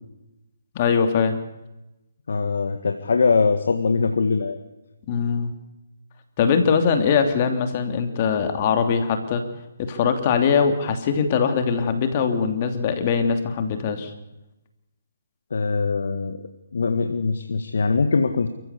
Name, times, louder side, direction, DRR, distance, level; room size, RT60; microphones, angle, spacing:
voice 1, 0.7-1.4 5.1-5.5 6.4-9.4 9.8-14.1, left 6 dB, 35° left, 7 dB, 2.9 m, -21 dB
voice 2, 2.3-4.6 15.5-18.5, left 4 dB, 70° left, 7 dB, 1.7 m, -22 dB
28.5 x 15.0 x 8.4 m, 0.96 s
hypercardioid pair, 150°, 0 cm